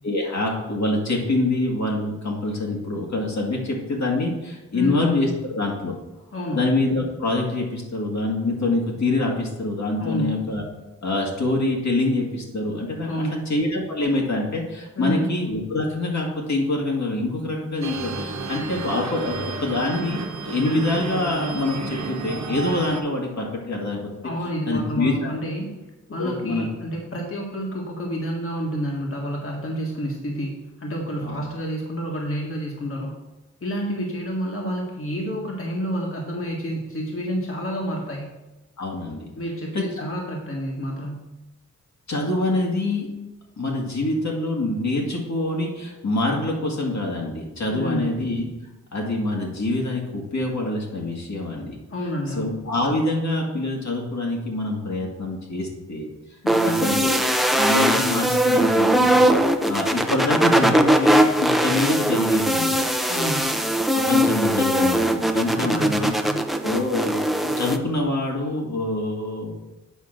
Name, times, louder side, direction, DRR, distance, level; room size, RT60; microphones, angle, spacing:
voice 1, 0.0-6.0 6.5-10.6 11.0-24.1 24.7-25.3 26.2-26.7 31.2-31.4 38.8-39.3 39.7-39.8 42.1-43.1 43.6-48.5 48.9-51.8 52.4-56.1 56.6-62.7 63.9-66.1 66.6-69.5, left 2 dB, 60° left, -1 dB, 1.8 m, -25 dB
voice 2, 4.7-5.0 6.3-6.7 10.0-10.4 13.1-13.5 15.0-15.3 24.2-25.7 26.1-30.5 30.8-33.1 33.6-38.4 39.4-41.3 47.7-48.1 51.9-52.6 56.4-56.9 63.1-63.6 65.6-66.5, equal, 45° left, -1 dB, 1.6 m, -29 dB
sound 1, 17.8-23.0, right 4 dB, 60° right, 1.1 m, -31 dB
sound 2, 56.5-67.8, right 1 dB, ahead, 0.7 m, -20 dB
8.1 x 3.8 x 6.4 m, 1.0 s
cardioid pair, 60°, 31 cm